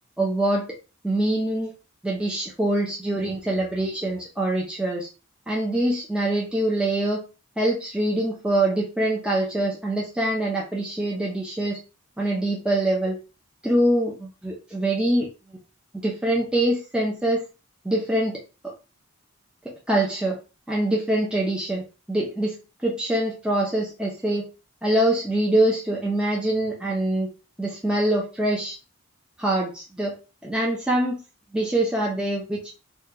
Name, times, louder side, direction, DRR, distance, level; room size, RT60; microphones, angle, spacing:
voice 1, 0.2-0.6 1.0-1.7 2.0-5.1 5.5-7.2 7.6-11.8 12.2-13.2 13.6-15.3 16.0-17.4 17.8-18.4 18.6-18.7 19.7-20.4 20.7-21.8 22.1-22.5 22.8-24.5 24.8-27.3 27.6-28.8 29.4-30.1 30.4-31.2 31.5-32.7, right 1 dB, 5° right, -3 dB, 0.5 m, -24 dB
2.9 x 2.2 x 3.4 m, 0.31 s
head